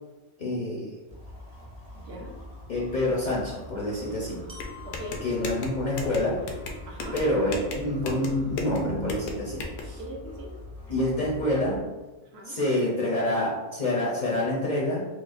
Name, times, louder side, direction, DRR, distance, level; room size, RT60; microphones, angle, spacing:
voice 1, 0.4-1.0 2.7-4.4 5.2-6.4 7.1-10.0 10.9-11.8 12.4-15.0, left 1 dB, 50° left, -5 dB, 0.6 m, -27 dB
sound 1, 1.1-11.8, left 1 dB, 80° right, 1.7 m, -44 dB
voice 2, 1.9-2.4 4.8-5.3 6.9-7.2 10.0-10.6 12.2-12.6, equal, 65° right, -1 dB, 0.8 m, -41 dB
Glockenspiel, 4.5-8.5, left 6 dB, 40° right, 0.4 m, -52 dB
sound 2, 4.6-9.8, left 3 dB, 80° left, 0.9 m, -36 dB
4.5 x 2.1 x 2.4 m, 1.1 s
omnidirectional pair, 1.3 m